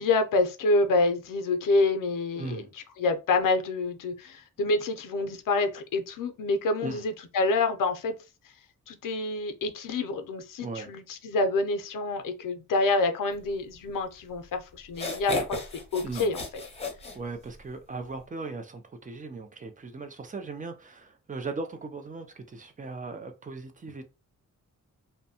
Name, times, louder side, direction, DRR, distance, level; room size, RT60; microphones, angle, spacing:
voice 1, 0.0-2.6 3.0-8.2 8.9-15.6 15.9-16.4, left 3 dB, 90° left, 0.5 m, -27 dB
voice 2, 2.3-2.7 6.8-7.0 10.6-10.9 16.0-16.3 17.1-24.0, right 3 dB, 25° right, 0.4 m, -38 dB
sound 1, 14.3-14.4 14.9-17.7, left 3 dB, 20° left, 0.6 m, -34 dB
2.6 x 2.1 x 2.7 m
wide cardioid pair, 160°, 32 cm